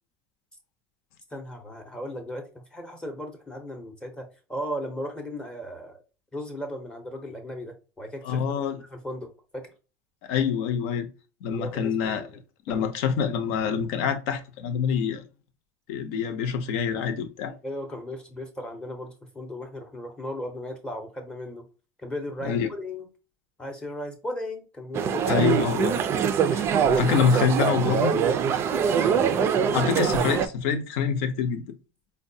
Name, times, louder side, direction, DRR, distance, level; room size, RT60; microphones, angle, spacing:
voice 1, 1.3-6.0 6.3-8.4 8.8-9.7 11.5-12.4 12.7-12.9 17.6-21.7 22.0-23.1 23.6-25.2 28.7-30.0, equal, 10° left, 0.7 m, -36 dB
voice 2, 8.2-8.8 10.2-11.1 11.4-12.3 12.7-15.2 15.9-17.5 22.4-22.7 25.3-26.0 26.5-28.1 29.7-31.6, left 7 dB, 65° left, 0.7 m, -26 dB
sound 1, 24.9-30.5, right 7 dB, 30° right, 0.4 m, -23 dB
4.5 x 2.1 x 2.6 m
supercardioid pair, 145°, 8 cm